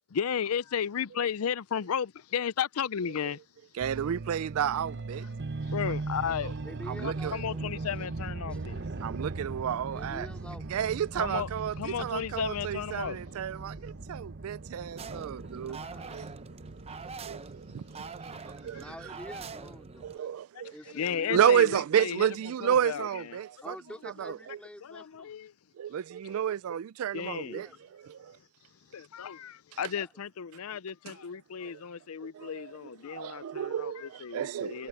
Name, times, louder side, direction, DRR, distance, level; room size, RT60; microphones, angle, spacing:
voice 1, 0.1-3.4 5.7-6.6 7.0-8.8 11.2-11.5 11.8-13.2 20.9-22.3 22.6-23.1 24.8-25.5 27.1-27.6 28.9-34.9, left 7 dB, 80° left, 0.5 m, -34 dB
voice 2, 3.7-5.3 5.8-5.9 6.9-7.4 9.0-10.3 10.7-16.3 17.3-18.2 18.6-18.9 20.0-20.7 21.3-23.8 24.0-24.6 25.8-27.7 28.1-28.4 29.7-29.8 31.1-31.2 31.6-31.8 32.2-32.8 33.1-34.9, right 9 dB, 75° right, 0.3 m, -31 dB
sound 1, 3.8-20.1, right 3 dB, 55° right, 0.9 m, -39 dB
voice 3, 6.6-7.7 8.5-8.6 9.9-10.9 15.6-16.3 18.8-20.3 20.7-21.6 23.6-25.4 27.3-27.8 29.9-30.1, equal, 5° left, 3.1 m, -47 dB
sound 2, 15.0-20.2, right 5 dB, 30° right, 0.7 m, -44 dB
head